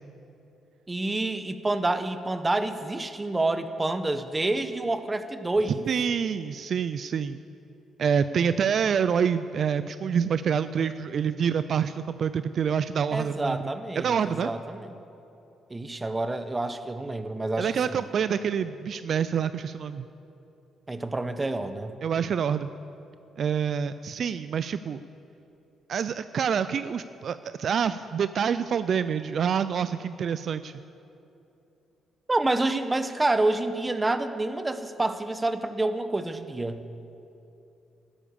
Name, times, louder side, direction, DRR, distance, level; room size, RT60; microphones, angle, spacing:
voice 1, 0.9-5.9 13.1-14.9 15.7-18.0 20.9-21.9 32.3-36.8, right 2 dB, 20° right, 10 dB, 0.9 m, -28 dB
voice 2, 5.9-7.4 8.0-13.7 14.0-14.5 17.6-20.1 22.0-22.7 23.4-25.0 25.9-30.7, right 7 dB, 55° right, 13 dB, 0.4 m, -27 dB
14.0 x 12.5 x 6.9 m, 2.9 s
cardioid pair, 100°, 0 cm